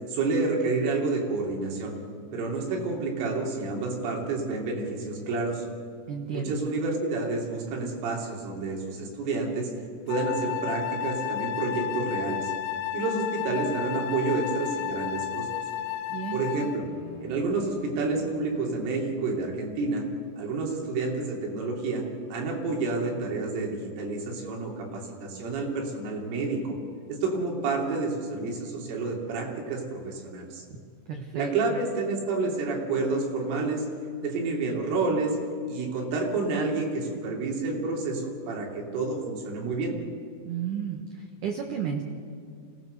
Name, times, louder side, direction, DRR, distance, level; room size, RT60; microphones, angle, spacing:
voice 1, 0.1-2.0 2.3-5.6 6.3-9.7 10.1-12.5 12.9-15.5 16.3-16.9 17.2-20.0 20.4-22.1 22.3-26.8 27.1-30.6 31.3-33.9 34.2-35.4 35.7-40.0, right 3 dB, 90° right, -1 dB, 5.7 m, -29 dB
voice 2, 6.1-6.6 16.1-16.5 31.1-31.5 40.4-42.0, right 7 dB, 65° right, 2 dB, 2.1 m, -32 dB
Wind instrument woodwind instrument, 10.1-16.9, left 11 dB, 90° left, 3.3 m, -32 dB
sound 1, 16.6-18.9, equal, 40° left, 2.5 m, -45 dB
26.0 x 18.0 x 6.7 m, 2.3 s
omnidirectional pair, 5.5 m